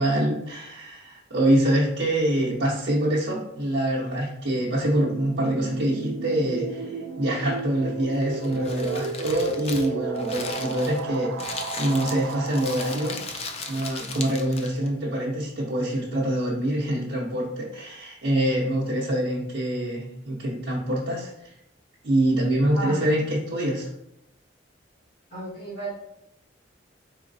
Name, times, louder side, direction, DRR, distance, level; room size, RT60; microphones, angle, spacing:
voice 1, 0.0-13.1 13.7-21.3 22.0-23.9, right 1 dB, 60° right, -8 dB, 0.8 m, -25 dB
sound 1, 4.5-14.0, right 5 dB, 90° right, 0.4 m, -34 dB
Crumpling crinkling, 8.1-14.9, left 4 dB, 30° left, 0.4 m, -37 dB
voice 2, 25.3-25.9, right 2 dB, 50° left, -9 dB, 1.4 m, -32 dB
4.1 x 3.9 x 2.7 m, 0.81 s
head